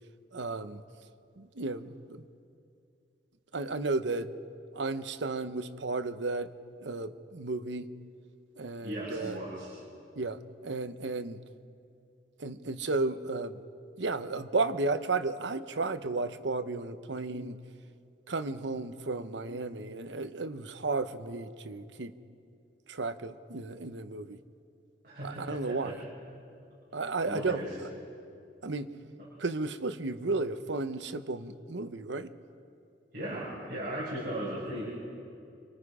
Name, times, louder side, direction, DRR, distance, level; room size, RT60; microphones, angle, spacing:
voice 1, 0.3-0.8 1.4-2.3 3.5-4.3 4.7-6.5 6.8-7.9 8.6-9.4 10.2-11.4 12.4-13.6 14.0-17.6 18.3-22.1 22.9-24.4 25.2-26.0 26.9-27.7 28.6-28.9 29.4-32.3, right 3 dB, 80° right, 10 dB, 0.9 m, -33 dB
voice 2, 8.8-9.7 25.0-25.9 27.2-27.7 33.1-34.9, right 1 dB, 50° right, -8 dB, 5.7 m, -37 dB
29.5 x 24.0 x 4.9 m, 2.5 s
head